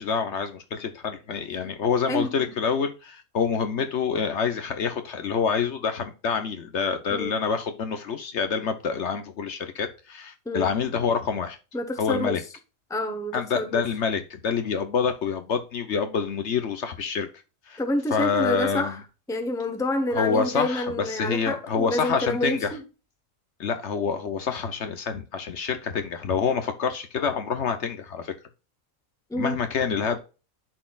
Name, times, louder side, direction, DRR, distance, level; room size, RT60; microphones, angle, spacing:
voice 1, 0.0-11.6 12.0-12.4 13.3-17.3 17.7-17.8 18.1-19.0 20.1-22.7 23.6-28.3 29.3-30.2, left 6 dB, 60° left, 1.0 m, -27 dB
voice 2, 2.1-2.5 7.1-7.4 10.5-10.7 11.7-12.4 12.9-13.8 17.8-19.0 19.3-22.8 29.3-29.6, left 1 dB, 5° left, 0.8 m, -28 dB
11.5 x 4.1 x 2.4 m
omnidirectional pair, 1.4 m